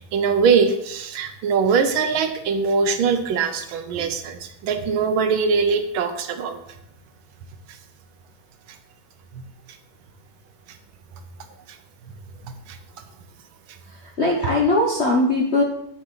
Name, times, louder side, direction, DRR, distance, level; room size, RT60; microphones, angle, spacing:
voice 1, 0.1-6.6 9.3-9.4, right 5 dB, 75° right, 8 dB, 1.4 m, -22 dB
voice 2, 13.9-15.6, left 2 dB, 55° left, -2 dB, 0.7 m, -20 dB
8.1 x 6.4 x 3.9 m, 0.78 s
omnidirectional pair, 2.4 m